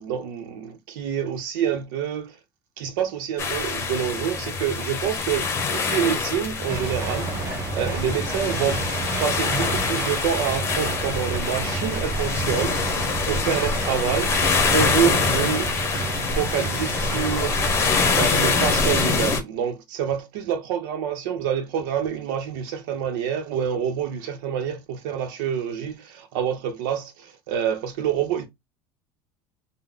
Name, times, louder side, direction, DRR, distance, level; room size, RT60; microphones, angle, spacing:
voice 1, 0.0-2.3 2.8-8.8 9.2-17.6 18.1-28.5, right 8 dB, 85° right, 0.9 m, -27 dB
sound 1, 3.4-19.4, left 4 dB, 25° left, 0.8 m, -25 dB
sound 2, 6.7-19.1, right 4 dB, 25° right, 0.9 m, -31 dB
3.8 x 2.2 x 3.5 m
cardioid pair, 155°, 11 cm